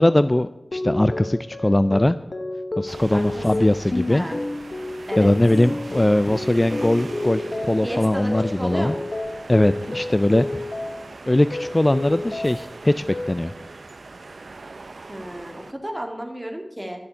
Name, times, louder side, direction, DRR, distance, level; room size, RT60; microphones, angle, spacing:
voice 1, 0.0-2.2 2.8-4.3 5.2-8.9 9.5-10.6 11.3-13.5, left 1 dB, 25° left, 13 dB, 0.4 m, -20 dB
sound 1, 0.7-11.2 11.5-12.8 13.1-13.6, left 2 dB, 55° left, 1.0 m, -31 dB
sound 2, 2.9-15.7, right 3 dB, 85° right, 0.6 m, -40 dB
voice 2, 3.1-3.7 4.1-4.4 5.1-5.3 7.8-8.3 8.6-9.1 15.1-17.0, equal, 15° right, 3 dB, 2.2 m, -33 dB
12.5 x 7.0 x 8.7 m, 0.94 s
wide cardioid pair, 60°, 0 cm